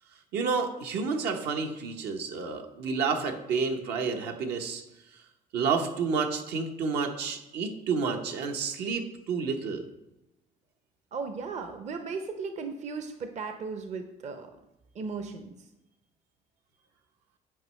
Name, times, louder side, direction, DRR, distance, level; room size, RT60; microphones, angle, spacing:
voice 1, 0.3-4.8 5.5-9.8, right 5 dB, 75° right, 4 dB, 0.9 m, -30 dB
voice 2, 11.1-14.5 14.9-15.5, right 4 dB, 45° right, 7 dB, 0.6 m, -36 dB
9.0 x 4.6 x 3.2 m, 0.93 s
cardioid pair, 110°, 17 cm